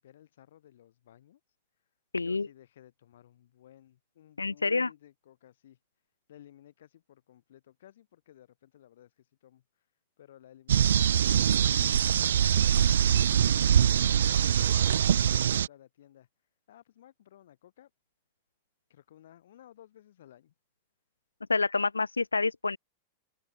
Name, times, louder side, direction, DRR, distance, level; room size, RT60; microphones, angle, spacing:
voice 1, 0.0-1.4 2.2-5.8 6.3-9.6 10.2-13.2 13.5-16.3 16.7-17.9 18.9-20.5, left 12 dB, 60° left, 4.8 m, -56 dB
voice 2, 2.1-2.5 4.4-4.9 21.5-22.8, left 3 dB, 80° left, 0.5 m, -28 dB
sound 1, 10.7-15.7, right 9 dB, 65° right, 0.5 m, -23 dB
figure-of-eight pair, 90°, 0 cm